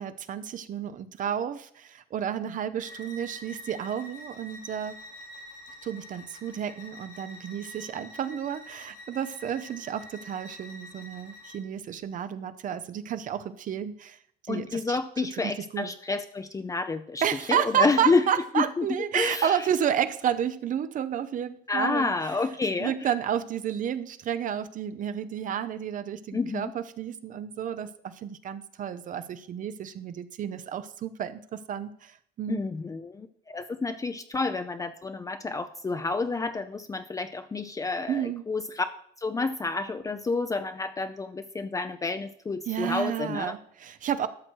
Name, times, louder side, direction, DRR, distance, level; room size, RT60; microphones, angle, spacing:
voice 1, 0.0-5.0 5.8-14.2 14.5-15.0 15.4-15.9 17.2-22.1 22.8-32.6 38.1-38.4 42.7-44.3, right 9 dB, 50° right, 12 dB, 0.7 m, -31 dB
Bowed string instrument, 2.8-11.6, left 1 dB, 80° left, 2.3 m, -46 dB
voice 2, 14.5-17.2 17.5-18.3 18.6-18.9 19.1-19.7 21.7-22.9 26.3-26.7 32.5-38.9 39.2-43.6, left 3 dB, 20° left, 9 dB, 0.5 m, -29 dB
12.5 x 6.1 x 4.6 m, 0.63 s
cardioid pair, 110°, 17 cm